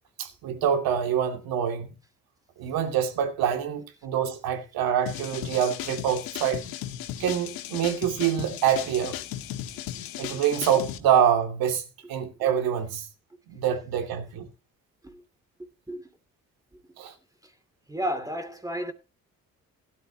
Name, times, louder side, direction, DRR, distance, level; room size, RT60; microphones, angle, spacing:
voice 1, 0.2-1.9 2.6-6.6 7.2-9.2 10.2-11.8 12.1-13.1 13.5-14.5 17.0-17.1, right 9 dB, 90° right, 2.5 m, -25 dB
sound 1, 5.1-11.0, left 12 dB, 90° left, 1.5 m, -36 dB
voice 2, 17.9-18.9, equal, 10° right, 2.5 m, -32 dB
17.0 x 12.0 x 2.9 m
supercardioid pair, 60°, 35 cm